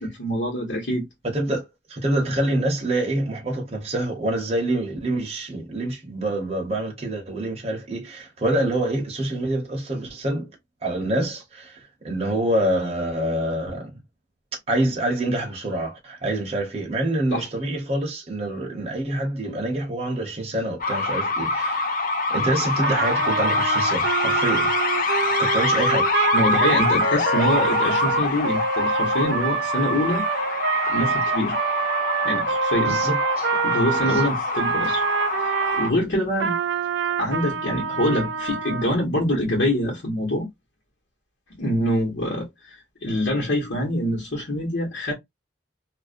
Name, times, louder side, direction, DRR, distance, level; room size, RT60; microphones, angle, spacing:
voice 1, 0.0-1.1 17.3-17.5 26.3-30.2 30.8-31.6 32.2-33.0 33.6-35.1 35.4-36.6 37.2-40.5 41.6-42.8 43.0-45.1, left 1 dB, 80° left, 1.1 m, -25 dB
voice 2, 1.2-10.5 10.8-14.0 14.7-21.9 22.3-24.7 25.4-26.1 32.8-33.5 34.0-34.2, right 1 dB, 35° right, 0.8 m, -26 dB
sound 1, 20.8-35.9, left 3 dB, 50° left, 0.4 m, -25 dB
Trumpet, 22.8-35.9 36.4-38.9, right 7 dB, 75° right, 0.4 m, -26 dB
2.4 x 2.1 x 2.4 m
head